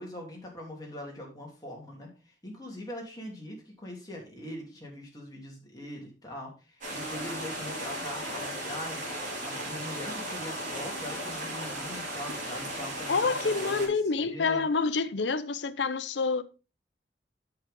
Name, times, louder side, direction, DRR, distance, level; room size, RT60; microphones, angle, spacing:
voice 1, 0.0-9.0 9.4-14.7, left 1 dB, 20° left, 3.1 m, -42 dB
sound 1, 6.8-13.9, right 1 dB, 50° right, 4.3 m, -36 dB
voice 2, 13.1-16.4, left 4 dB, 90° left, 0.7 m, -27 dB
8.5 x 7.2 x 3.7 m
head